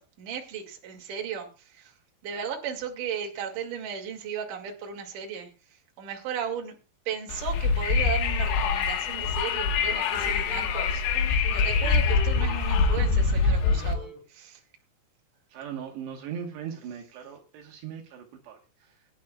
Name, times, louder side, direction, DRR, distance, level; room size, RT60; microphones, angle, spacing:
voice 1, 0.2-1.5 1.8-1.9 2.2-5.5 6.0-6.7 7.1-11.0 11.5-14.6, right 7 dB, 50° right, 2 dB, 3.4 m, -35 dB
Wind, 7.3-14.0, left 5 dB, 90° left, 3.8 m, -24 dB
sound 1, 9.9-10.7 11.1-13.4 13.6-14.2, left 1 dB, 70° left, 4.7 m, -44 dB
voice 2, 15.5-19.1, right 8 dB, 75° right, 1 dB, 3.4 m, -39 dB
23.0 x 11.0 x 2.3 m, 0.31 s
omnidirectional pair, 5.2 m